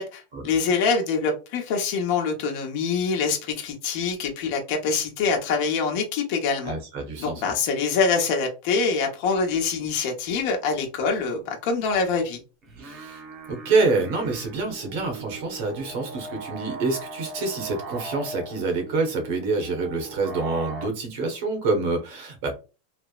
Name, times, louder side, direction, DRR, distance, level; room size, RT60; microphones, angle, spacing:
voice 1, 0.0-6.8 7.2-12.4, left 5 dB, 50° left, 0.9 m, -25 dB
voice 2, 6.6-7.4 12.8-13.2 13.5-22.5, right 3 dB, 60° right, 1.1 m, -26 dB
sound 1, 12.6-20.9, right 3 dB, 25° right, 0.8 m, -39 dB
3.2 x 2.0 x 2.4 m
supercardioid pair, 155°, 0 cm